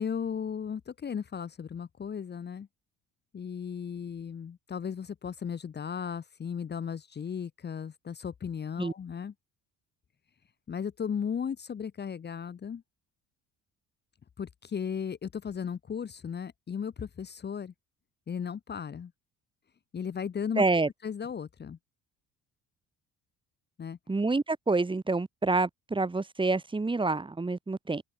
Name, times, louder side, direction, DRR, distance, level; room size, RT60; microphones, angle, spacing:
voice 1, 0.0-2.7 3.3-9.3 10.7-12.8 14.4-17.7 18.3-19.1 19.9-20.6 21.0-21.8 23.8-24.0, left 7 dB, 35° left, 1.7 m, -35 dB
voice 2, 20.6-20.9 24.1-28.0, right 3 dB, 15° right, 3.9 m, -27 dB
open air
cardioid pair, 125°, 31 cm